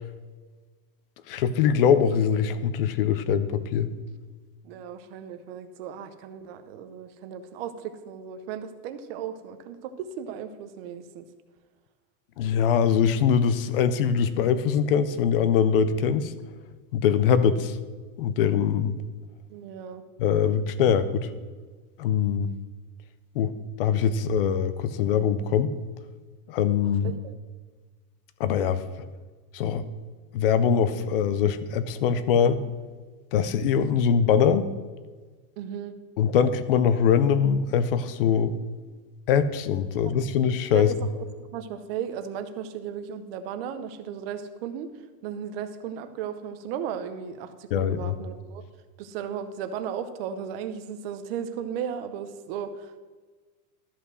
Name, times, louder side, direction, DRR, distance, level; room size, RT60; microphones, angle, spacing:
voice 1, 1.3-3.9 12.4-16.3 16.9-17.8 18.2-18.9 20.2-21.3 22.0-22.5 23.4-23.5 23.8-25.7 26.5-27.1 28.4-28.9 29.5-29.8 30.3-32.6 33.3-34.7 36.2-38.5 39.3-40.9 47.7-48.2, left 7 dB, 40° left, 14 dB, 0.4 m, -22 dB
voice 2, 4.6-11.2 19.5-20.0 27.0-27.3 35.6-35.9 39.9-40.1 40.7-41.0 41.5-44.9 45.2-48.6 49.0-53.0, right 8 dB, 40° right, 9 dB, 0.7 m, -35 dB
13.0 x 5.5 x 6.2 m, 1.4 s
supercardioid pair, 175°, 48 cm